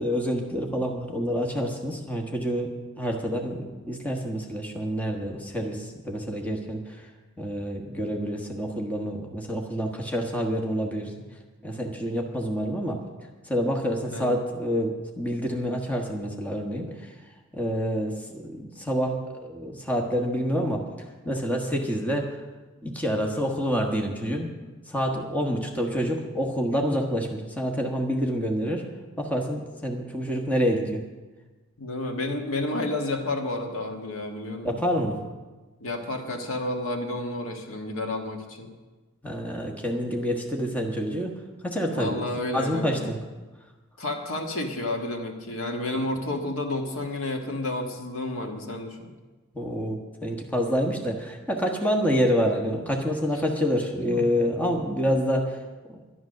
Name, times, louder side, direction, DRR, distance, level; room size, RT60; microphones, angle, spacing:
voice 1, 0.0-2.7 3.0-7.0 7.4-11.1 11.6-13.0 13.5-17.1 17.5-20.8 21.2-22.3 22.8-24.5 24.9-28.9 29.2-31.0 34.6-35.2 39.2-41.4 41.6-42.2 42.5-43.2 45.9-46.0 49.5-55.6 55.9-56.0, equal, 5° left, 1 dB, 1.3 m, -27 dB
voice 2, 14.0-14.4 31.8-34.8 35.8-38.7 41.9-43.0 44.0-49.1 53.3-53.6 54.0-54.3, left 2 dB, 75° left, 3 dB, 1.7 m, -31 dB
11.0 x 11.0 x 6.5 m, 1.2 s
head